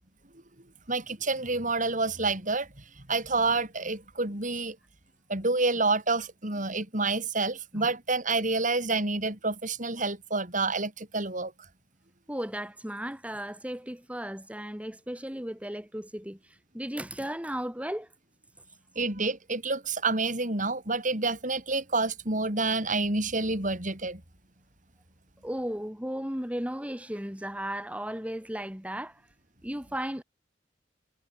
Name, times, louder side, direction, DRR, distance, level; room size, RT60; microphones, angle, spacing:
voice 1, 0.9-2.7 3.1-4.8 5.3-11.5 19.0-24.2, right 3 dB, 45° right, 6.1 m, -28 dB
voice 2, 12.3-18.1 25.4-29.2 29.6-30.2, equal, 5° right, 3.9 m, -35 dB
head